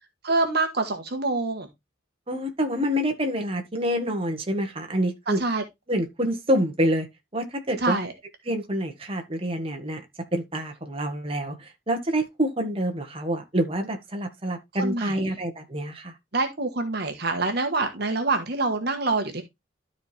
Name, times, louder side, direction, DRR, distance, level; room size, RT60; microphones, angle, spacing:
voice 1, 0.2-1.7 5.3-5.6 7.8-8.1 14.8-15.1 16.3-19.4, right 3 dB, 55° right, 1.3 m, -26 dB
voice 2, 2.3-5.4 5.9-7.1 7.3-8.0 8.4-10.0 10.3-16.1, equal, 30° right, 1.5 m, -27 dB
12.5 x 4.3 x 3.3 m
head